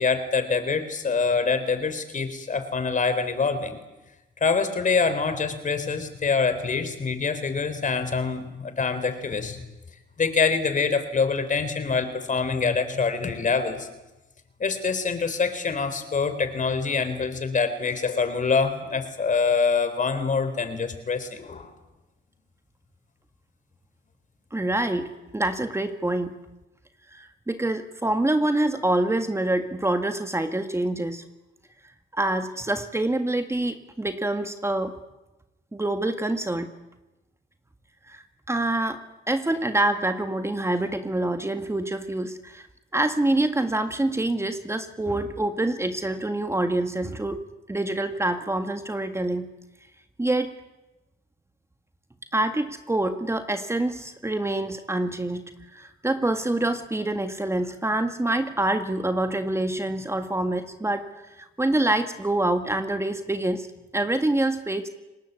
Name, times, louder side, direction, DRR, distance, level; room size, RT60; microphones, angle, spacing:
voice 1, 0.0-3.8 4.4-9.6 10.2-13.9 14.6-21.7, left 5 dB, 40° left, 10 dB, 4.2 m, -25 dB
voice 2, 24.5-26.3 27.1-31.2 32.1-34.9 35.7-36.7 38.1-39.0 39.3-42.7 42.9-49.5 50.2-50.5 52.3-55.4 55.7-61.1 61.4-63.7 63.9-64.9, right 1 dB, 15° right, 8 dB, 1.9 m, -26 dB
30.0 x 19.5 x 8.4 m, 1.0 s
cardioid pair, 90°, 20 cm